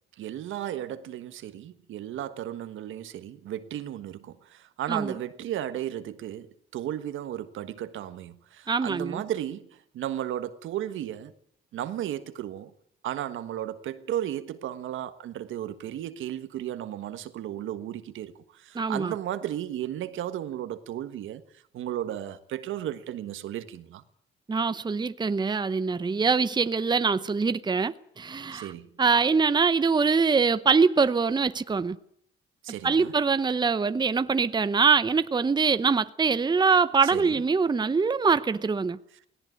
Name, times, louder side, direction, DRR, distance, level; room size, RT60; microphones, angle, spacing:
voice 1, 0.2-6.5 6.7-9.7 9.9-11.3 11.7-12.7 13.0-18.3 18.6-21.4 21.7-24.0 28.5-28.9 32.6-33.1 37.0-37.4, right 11 dB, 80° right, 1.5 m, -34 dB
voice 2, 8.7-9.2 18.7-19.1 24.5-28.7 29.0-32.0 32.8-39.0, right 5 dB, 20° right, 0.8 m, -24 dB
18.0 x 17.5 x 9.3 m
cardioid pair, 90°, 20 cm